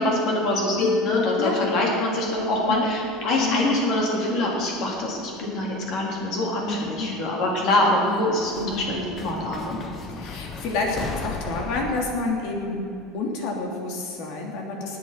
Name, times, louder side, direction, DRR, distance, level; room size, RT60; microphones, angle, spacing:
voice 1, 0.0-9.8, left 1 dB, 50° left, -2 dB, 3.6 m, -24 dB
Mallet percussion, 0.8-5.0, left 5 dB, 90° left, 1.8 m, -31 dB
sound 1, 2.3-4.3 4.6-5.3 6.4-6.5 8.1-12.2, left 4 dB, 30° left, 1.2 m, -37 dB
voice 2, 3.3-3.6 6.8-7.1 8.5-8.9 10.1-12.8 13.1-15.0, left 3 dB, 70° left, 1 dB, 3.0 m, -29 dB
19.0 x 8.6 x 5.9 m, 2.7 s
supercardioid pair, 135°, 0 cm